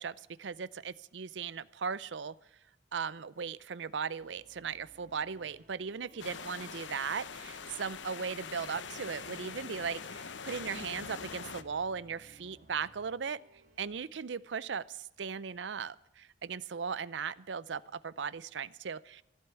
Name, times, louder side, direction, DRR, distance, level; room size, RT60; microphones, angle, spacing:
voice 1, 0.0-2.3 2.9-13.4 13.8-19.2, right 6 dB, 80° right, 19 dB, 0.6 m, -38 dB
sound 1, 4.2-14.0, right 1 dB, 45° right, 2.4 m, -62 dB
sound 2, 6.2-11.6, left 6 dB, 85° left, 0.9 m, -43 dB
15.5 x 8.2 x 9.6 m, 0.87 s
head